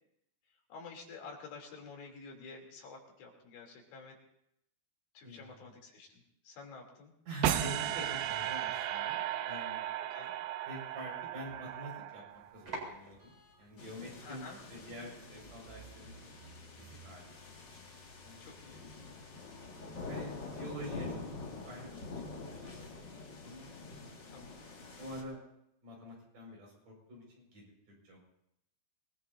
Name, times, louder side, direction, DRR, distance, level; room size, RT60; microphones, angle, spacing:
voice 1, 0.7-4.1 5.2-7.1 10.1-10.3 14.2-14.6 18.4-18.8 24.3-24.6, left 4 dB, 80° left, 0 dB, 5.5 m, -50 dB
voice 2, 5.2-5.8 7.3-9.9 10.7-16.1 16.4-17.4 18.2-18.6 20.0-21.2 21.6-23.7 24.1-24.2 25.0-25.4 25.8-28.2, right 1 dB, 50° right, -1 dB, 6.9 m, -47 dB
sound 1, 7.4-12.6, right 11 dB, 80° right, 2.8 m, -35 dB
sound 2, 12.3-19.9, right 2 dB, 30° right, 4.7 m, -52 dB
sound 3, 13.8-25.2, left 3 dB, 35° left, 1.9 m, -46 dB
25.5 x 20.0 x 2.7 m, 0.78 s
omnidirectional pair, 5.0 m